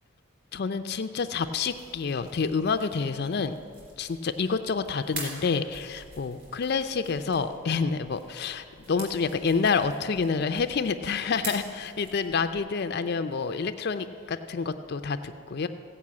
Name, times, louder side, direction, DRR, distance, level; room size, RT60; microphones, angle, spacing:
voice 1, 0.5-3.5 4.0-15.7, left 5 dB, 50° left, 9 dB, 0.4 m, -28 dB
sound 1, 1.4-12.6, right 1 dB, 40° right, 3.6 m, -45 dB
16.0 x 5.5 x 8.5 m, 2.3 s
head